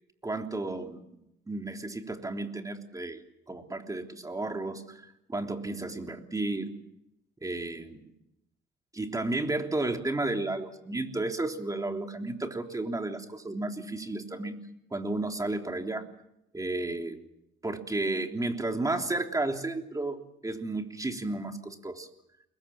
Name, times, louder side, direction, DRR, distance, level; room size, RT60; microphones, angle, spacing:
voice 1, 0.2-1.0 1.5-3.2 3.5-5.0 5.3-6.7 7.4-8.0 8.9-14.6 14.9-16.0 16.5-17.2 17.6-22.1, right 2 dB, 15° right, 4 dB, 3.4 m, -32 dB
29.5 x 22.0 x 7.2 m, 0.81 s
cardioid pair, 90°, 20 cm